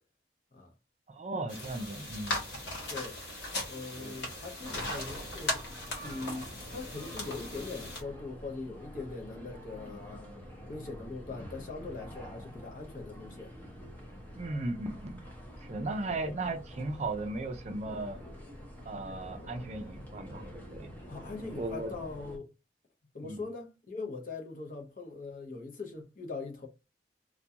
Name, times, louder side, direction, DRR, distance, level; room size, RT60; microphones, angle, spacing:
voice 1, 1.1-2.4 4.0-4.2 14.4-15.2 15.6-18.2 18.9-20.4 20.7-20.9 21.6-21.9 23.2-23.4, right 2 dB, 40° right, 0.4 m, -36 dB
sound 1, 1.5-8.0, left 1 dB, 90° left, 1.0 m, -38 dB
voice 2, 3.6-5.7 6.0-10.3 10.7-13.5 21.1-22.4 23.1-26.7, left 3 dB, 50° left, 0.7 m, -41 dB
sound 2, 4.6-22.4, equal, 10° left, 0.6 m, -47 dB
2.3 x 2.2 x 2.7 m
head